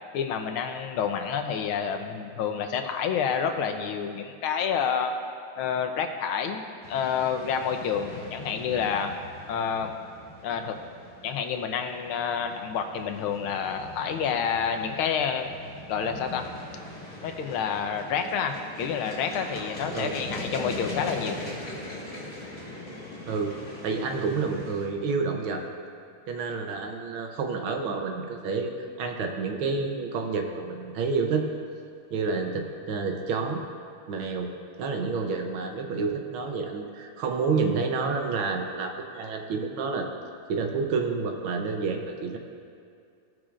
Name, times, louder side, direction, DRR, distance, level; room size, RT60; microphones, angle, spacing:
voice 1, 0.1-5.1 5.6-6.6 6.9-9.1 9.5-9.9 10.4-10.8 11.2-15.5 15.9-16.4 17.2-21.4, left 7 dB, 80° left, 5 dB, 1.5 m, -28 dB
sound 1, 6.8-24.9, left 2 dB, 20° left, 2.2 m, -41 dB
voice 2, 23.8-25.7 26.3-28.7 29.0-31.4 32.1-33.6 34.1-34.5 34.8-40.1 40.5-42.4, right 4 dB, 75° right, 4 dB, 1.6 m, -29 dB
17.0 x 6.1 x 2.5 m, 2.4 s
omnidirectional pair, 2.3 m